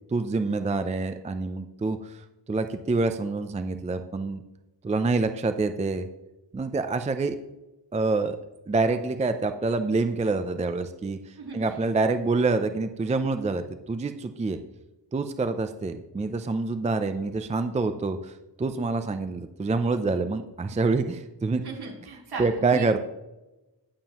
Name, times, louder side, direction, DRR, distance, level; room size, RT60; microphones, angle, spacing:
voice 1, 0.1-4.4 4.8-6.1 6.5-7.4 7.9-8.4 8.7-14.6 15.1-21.6 22.4-23.0, right 3 dB, 15° right, 9 dB, 0.4 m, -27 dB
voice 2, 21.6-23.0, right 3 dB, 65° right, -2 dB, 3.3 m, -37 dB
20.0 x 7.4 x 2.9 m, 1.0 s
wide cardioid pair, 170°, 42 cm